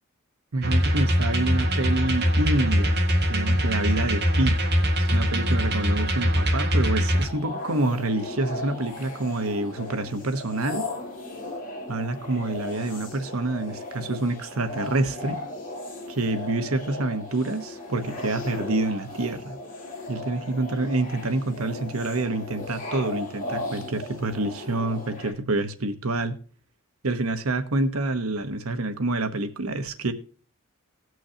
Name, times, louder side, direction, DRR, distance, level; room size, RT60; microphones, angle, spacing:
voice 1, 0.5-3.0 3.3-4.6 5.0-10.8 11.9-15.4 16.1-19.6 20.1-26.4 27.0-30.1, right 2 dB, 85° right, 1.1 m, -27 dB
sound 1, 0.6-7.3, equal, 50° right, 1.7 m, -22 dB
sound 2, 7.1-25.3, left 1 dB, 40° left, 2.3 m, -36 dB
18.5 x 6.3 x 2.8 m
head